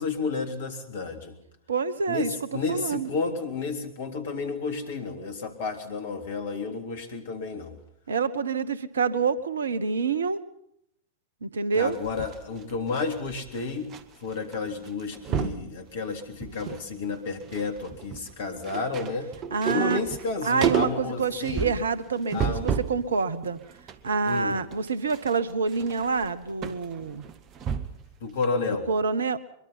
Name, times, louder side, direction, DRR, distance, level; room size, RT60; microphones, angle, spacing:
voice 1, 0.0-1.4 2.1-7.7 11.7-13.9 14.2-19.3 19.7-21.7 22.3-22.7 24.2-24.6 28.2-28.9, left 4 dB, 55° left, 6 dB, 3.4 m, -31 dB
voice 2, 1.7-2.3 2.7-3.1 8.1-10.4 11.4-12.0 19.5-20.0 20.4-23.6 24.0-27.2 28.9-29.4, right 5 dB, 70° right, 17 dB, 1.2 m, -27 dB
sound 1, 11.9-14.0 14.3-14.6 14.8-15.7 16.2-16.9 17.1-23.0 23.4-28.1 28.4-28.5, right 7 dB, 35° right, 1.4 m, -32 dB
23.5 x 22.5 x 5.8 m, 0.74 s
figure-of-eight pair, 90°, 0 cm